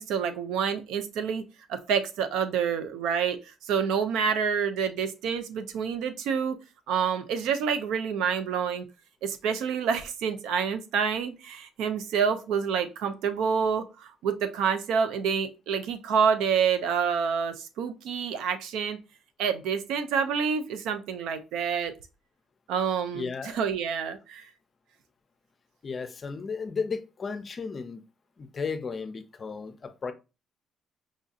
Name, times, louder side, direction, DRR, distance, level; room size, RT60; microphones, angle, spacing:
voice 1, 0.0-1.4 1.7-3.4 3.7-6.6 6.9-8.8 9.2-19.0 19.4-21.9 22.7-24.4, right 7 dB, 85° right, 0.5 m, -28 dB
voice 2, 23.1-23.6 25.8-28.0 28.4-30.1, left 5 dB, 30° left, 0.5 m, -34 dB
4.9 x 2.7 x 2.4 m
cardioid pair, 140°, 0 cm